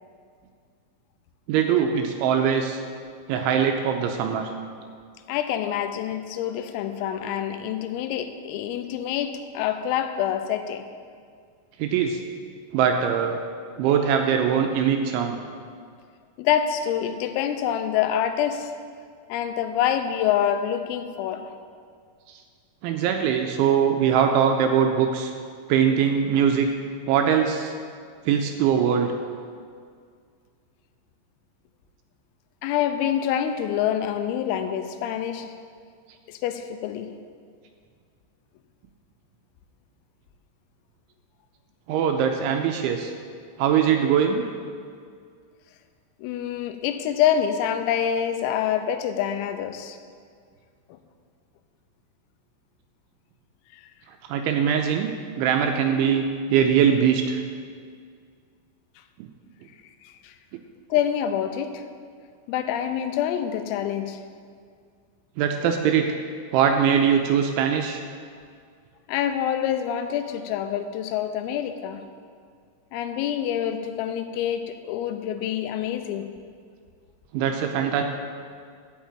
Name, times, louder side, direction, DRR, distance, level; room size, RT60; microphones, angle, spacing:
voice 1, 1.5-2.8 3.3-4.5 11.8-12.2 12.7-13.4 13.8-15.4 22.3-22.4 22.8-25.3 25.7-26.7 27.1-27.7 28.3-29.1 41.9-43.1 43.6-44.5 54.3-57.4 59.2-59.3 65.4-66.2 66.5-68.0 77.3-78.0, right 8 dB, 85° right, 4 dB, 2.9 m, -22 dB
voice 2, 5.3-10.8 16.4-18.7 19.3-21.5 32.6-35.6 36.3-37.1 46.2-50.0 50.9-51.0 60.0-60.4 60.9-61.8 62.5-64.2 69.1-72.0 72.9-76.3, left 9 dB, 90° left, 8 dB, 3.4 m, -26 dB
11.5 x 6.6 x 8.8 m, 2.1 s
omnidirectional pair, 5.9 m